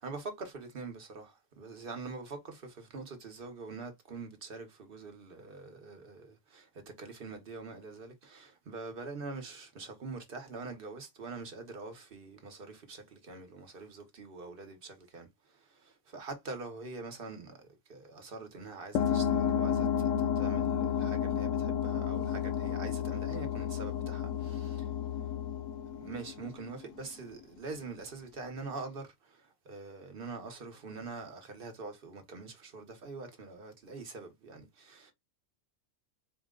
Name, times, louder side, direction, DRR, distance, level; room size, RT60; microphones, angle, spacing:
voice 1, 0.0-24.9 25.9-35.1, right 3 dB, 50° right, 1.1 m, -44 dB
sound 1, 18.9-27.1, left 8 dB, 80° left, 0.9 m, -31 dB
4.4 x 2.1 x 3.6 m
omnidirectional pair, 1.3 m